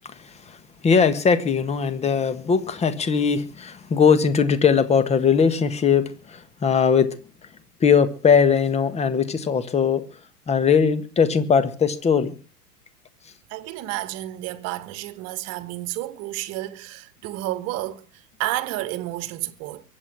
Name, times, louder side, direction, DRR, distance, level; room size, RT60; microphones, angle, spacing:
voice 1, 0.0-0.6 0.8-7.1 7.8-10.0 10.5-12.3, left 6 dB, 15° left, 1.6 m, -20 dB
voice 2, 13.5-19.8, right 16 dB, 30° right, 1.7 m, -31 dB
22.5 x 8.8 x 6.1 m
figure-of-eight pair, 105°, 47 cm